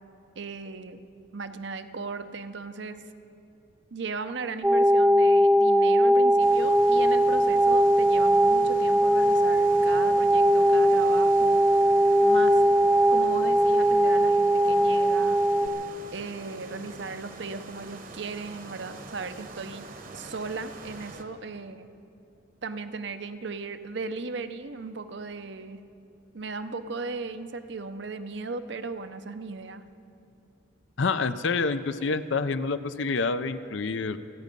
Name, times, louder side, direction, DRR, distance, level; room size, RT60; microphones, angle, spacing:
voice 1, 0.4-1.0 1.3-3.0 3.9-11.6 12.2-12.6 13.1-15.4 16.1-21.9 22.6-25.8 26.3-29.8, right 4 dB, 60° right, 10 dB, 0.7 m, -37 dB
sound 1, 4.6-15.7, right 1 dB, 5° right, 0.4 m, -20 dB
sound 2, 6.4-21.2, right 2 dB, 45° right, 1.1 m, -44 dB
voice 2, 31.0-34.2, left 4 dB, 70° left, 12 dB, 0.6 m, -27 dB
28.0 x 9.5 x 5.3 m, 2.6 s
head